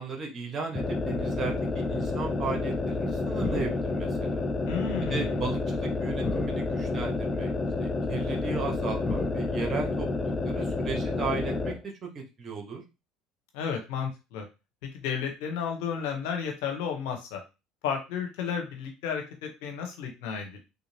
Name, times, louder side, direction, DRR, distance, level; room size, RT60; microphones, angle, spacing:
voice 1, 0.0-4.4 5.1-7.5 7.8-12.8, right 4 dB, 35° right, 2 dB, 1.3 m, -36 dB
sound 1, 0.7-11.8, left 3 dB, 30° left, 0.5 m, -29 dB
voice 2, 4.7-5.4 13.5-14.4 14.9-17.4 17.8-20.6, left 7 dB, 70° left, 3 dB, 1.0 m, -32 dB
3.3 x 2.8 x 2.9 m, 0.27 s
hypercardioid pair, 75°, 0 cm